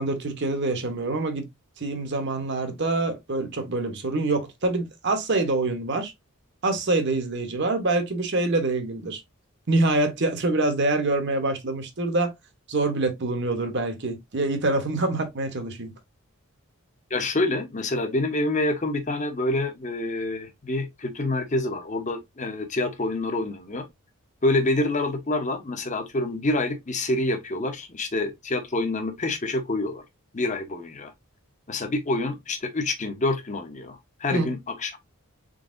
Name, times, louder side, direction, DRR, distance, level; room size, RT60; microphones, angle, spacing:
voice 1, 0.0-1.5 1.8-6.1 6.6-9.2 9.7-12.3 12.7-15.9 34.3-34.5, right 2 dB, 55° right, 1.0 m, -25 dB
voice 2, 17.1-23.9 24.4-30.0 30.3-31.1 31.7-34.9, left 2 dB, 35° left, 0.8 m, -27 dB
4.0 x 3.9 x 2.5 m
head